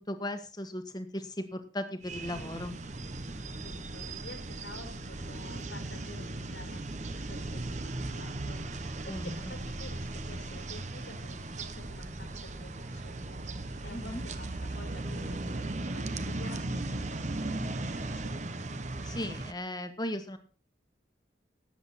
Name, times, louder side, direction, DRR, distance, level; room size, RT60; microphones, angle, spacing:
voice 1, 0.1-2.8 9.1-9.5 13.9-14.2 19.0-20.4, left 1 dB, 20° left, 7 dB, 1.5 m, -37 dB
sound 1, 2.0-19.5, right 2 dB, 40° right, 1.0 m, -37 dB
voice 2, 3.6-18.4, left 1 dB, 90° left, 3 dB, 4.4 m, -50 dB
18.0 x 8.0 x 4.2 m, 0.36 s
head